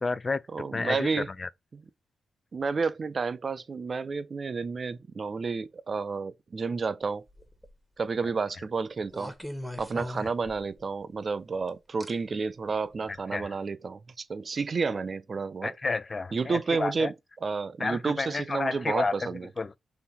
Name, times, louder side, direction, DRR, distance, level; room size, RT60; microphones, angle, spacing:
voice 1, 0.0-0.4 0.7-1.1 1.4-1.5 13.3-13.5 15.6-17.1 17.8-19.2 19.6-19.8, left 3 dB, 40° left, 0.3 m, -30 dB
voice 2, 0.5-1.3 1.7-1.8 2.5-7.2 8.0-9.3 9.8-15.8 16.3-17.1 17.4-19.5, right 4 dB, 50° right, 0.5 m, -31 dB
sound 1, 7.3-7.8 9.1-10.9 12.0-12.1 12.9-13.1, left 1 dB, 5° left, 1.1 m, -40 dB
3.9 x 2.9 x 4.2 m
cardioid pair, 65°, 0 cm